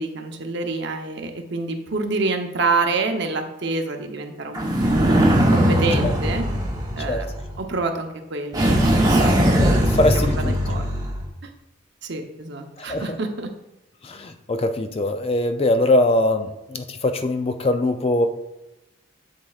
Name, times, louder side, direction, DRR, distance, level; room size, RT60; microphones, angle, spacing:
voice 1, 0.0-5.2 5.5-6.4 7.0-7.3 7.6-9.3 10.2-10.8 12.0-13.5, right 3 dB, 55° right, 5 dB, 0.7 m, -27 dB
sound 1, 4.5-7.6 8.5-11.2, equal, 20° right, 0.9 m, -20 dB
voice 2, 7.0-7.3 9.6-10.6 12.8-13.2 14.0-18.3, left 1 dB, 30° left, 8 dB, 0.4 m, -22 dB
7.4 x 7.4 x 2.4 m, 0.95 s
head